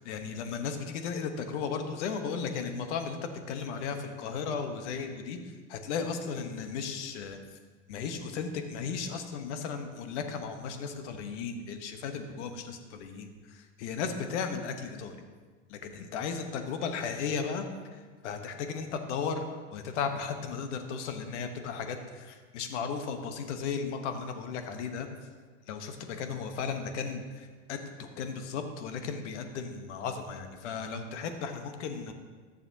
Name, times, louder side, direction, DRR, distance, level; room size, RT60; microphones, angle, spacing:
voice 1, 0.0-5.4 5.7-7.4 7.9-15.3 15.7-17.7 17.9-25.1 25.7-32.1, left 6 dB, 80° left, 7 dB, 1.1 m, -35 dB
14.0 x 7.0 x 2.8 m, 1.5 s
hypercardioid pair, 100°, 35 cm